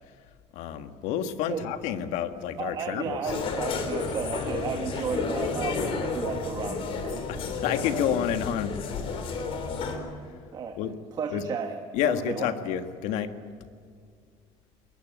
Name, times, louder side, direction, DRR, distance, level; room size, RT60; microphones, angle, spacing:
voice 1, 0.5-3.2 7.3-9.2 10.8-10.9 11.3-11.4 11.9-13.3, left 9 dB, 75° left, 9 dB, 1.7 m, -29 dB
voice 2, 2.6-7.2 10.5-10.8 11.2-12.5, right 6 dB, 35° right, 5 dB, 1.6 m, -33 dB
sound 1, 3.3-10.0, left 4 dB, 50° left, 3.5 m, -31 dB
22.5 x 20.5 x 9.3 m, 2.1 s
cardioid pair, 145°, 12 cm